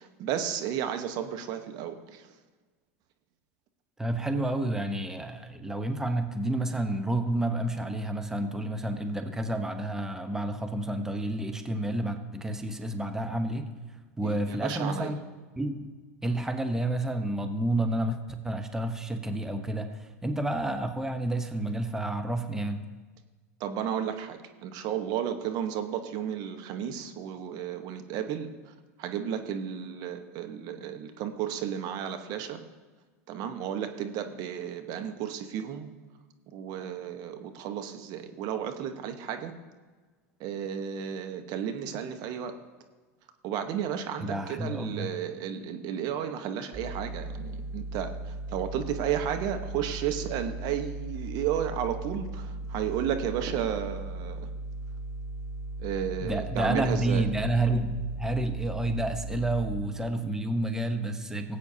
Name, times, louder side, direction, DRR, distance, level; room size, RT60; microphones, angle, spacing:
voice 1, 0.0-2.3 14.2-15.1 23.6-28.7 29.0-32.6 33.3-35.9 36.5-39.5 40.4-42.5 43.4-54.5 55.8-57.3, right 9 dB, 50° right, 7 dB, 1.1 m, -33 dB
voice 2, 4.0-13.7 14.2-15.2 15.6-15.9 16.2-18.2 18.4-22.8 44.2-45.1 56.2-61.6, right 1 dB, 5° right, 7 dB, 0.9 m, -30 dB
sound 1, 46.7-59.8, right 2 dB, 30° right, 3.8 m, -37 dB
18.0 x 8.4 x 2.8 m, 1.4 s
hypercardioid pair, 100°, 8 cm